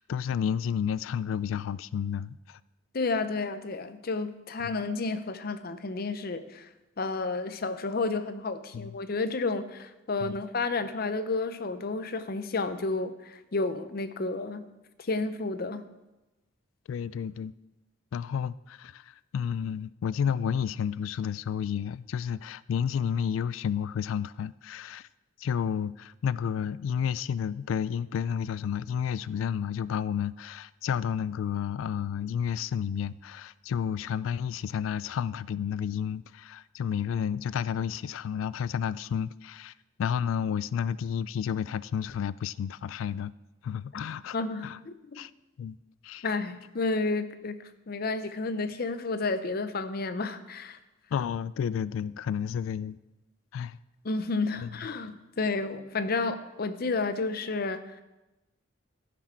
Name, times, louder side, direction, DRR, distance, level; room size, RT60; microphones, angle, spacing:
voice 1, 0.0-2.6 4.6-4.8 8.7-9.0 10.2-10.4 16.9-17.5 18.1-25.1 25.4-39.7 40.0-43.3 43.6-44.4 44.6-44.8 45.1-45.3 45.6-45.8 46.0-46.3 51.1-53.0 53.5-53.8 54.6-54.7, left 8 dB, 80° left, 19 dB, 0.3 m, -31 dB
voice 2, 2.9-6.7 7.0-14.6 15.1-15.8 44.3-45.2 46.2-47.6 47.9-50.8 54.0-57.8, left 3 dB, 50° left, 11 dB, 0.6 m, -31 dB
14.5 x 6.2 x 4.4 m, 1.0 s
head